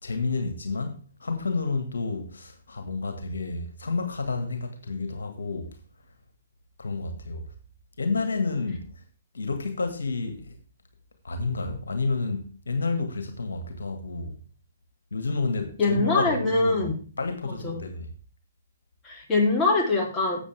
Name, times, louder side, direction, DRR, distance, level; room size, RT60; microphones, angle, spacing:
voice 1, 0.0-5.8 6.8-7.5 8.0-9.0 9.3-10.6 11.2-14.4 15.1-16.8 17.2-18.1, left 3 dB, 75° left, 1.8 m, -30 dB
voice 2, 15.8-17.0 17.6-17.8 19.0-20.4, left 3 dB, 20° left, 3.2 m, -23 dB
13.0 x 8.1 x 3.5 m
figure-of-eight pair, 125°, 0 cm